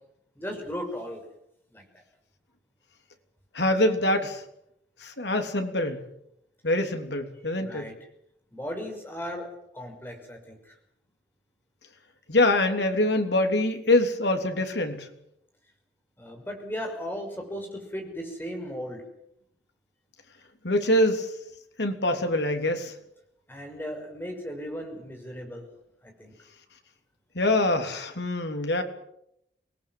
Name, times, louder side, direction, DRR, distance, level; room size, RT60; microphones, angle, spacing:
voice 1, 0.4-1.2 1.7-2.0 7.6-8.0 8.5-9.5 9.7-10.8 16.2-19.0 23.5-25.7 26.0-26.3, equal, 10° left, 3 dB, 5.8 m, -36 dB
voice 2, 3.5-4.4 5.0-6.0 6.6-7.9 12.3-15.1 20.6-21.3 21.8-22.9 27.3-28.8, left 1 dB, 80° left, 6 dB, 3.4 m, -24 dB
25.5 x 20.0 x 7.8 m, 0.77 s
head